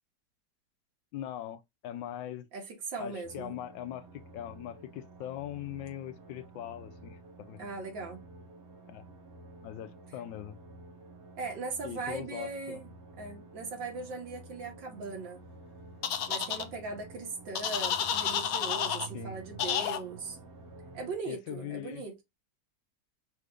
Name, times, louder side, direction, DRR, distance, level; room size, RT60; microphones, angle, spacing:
voice 1, 1.1-2.5 3.0-7.7 8.9-9.0 9.6-10.6 11.8-12.8 19.1-19.4 21.3-22.0, left 11 dB, 85° left, 1.3 m, -41 dB
voice 2, 2.5-3.6 7.6-8.2 11.4-12.9 13.2-15.4 16.3-20.4 20.9-22.2, right 4 dB, 85° right, 2.3 m, -39 dB
sound 1, 3.2-21.1, right 3 dB, 70° right, 2.1 m, -50 dB
sound 2, 16.0-16.6 17.6-19.1 19.6-20.0, left 8 dB, 65° left, 0.9 m, -30 dB
5.6 x 2.5 x 3.3 m
omnidirectional pair, 2.0 m